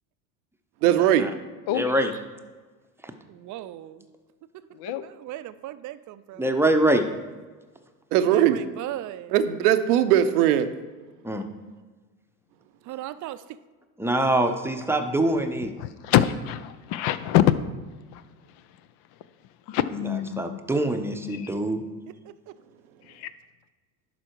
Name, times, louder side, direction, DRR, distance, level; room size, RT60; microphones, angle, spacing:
voice 1, 0.8-1.3 8.1-8.6 9.3-10.7, right 11 dB, 75° right, 10 dB, 0.8 m, -19 dB
voice 2, 1.7-2.1 6.4-7.0 11.2-11.4 14.0-15.7 20.4-21.8, right 1 dB, 5° right, 6 dB, 0.7 m, -24 dB
voice 3, 3.3-4.1 5.0-6.5 8.2-9.4 12.8-13.4 22.2-22.3, right 13 dB, 40° right, 13 dB, 0.5 m, -37 dB
voice 4, 4.7-5.1 15.8-17.4 18.1-18.2 19.7-20.6 21.2-21.5 23.1-23.3, left 12 dB, 55° left, 14 dB, 0.6 m, -25 dB
11.5 x 4.3 x 4.6 m, 1.4 s
hypercardioid pair, 75°, 46 cm